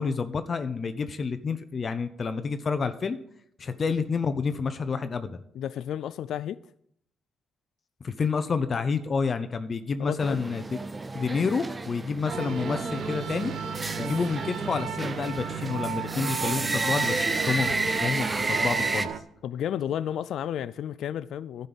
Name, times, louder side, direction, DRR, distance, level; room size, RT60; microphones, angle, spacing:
voice 1, 0.0-3.2 3.6-5.4 8.0-10.8 11.1-13.5 14.0-19.1, left 5 dB, 40° left, 0.7 m, -29 dB
voice 2, 5.5-6.6 10.0-10.4 19.4-21.7, left 10 dB, 75° left, 0.3 m, -32 dB
sound 1, 10.2-19.1, right 2 dB, 25° right, 0.7 m, -31 dB
sound 2, 12.3-19.2, right 8 dB, 70° right, 0.9 m, -35 dB
11.0 x 5.3 x 7.9 m
cardioid pair, 90°, 0 cm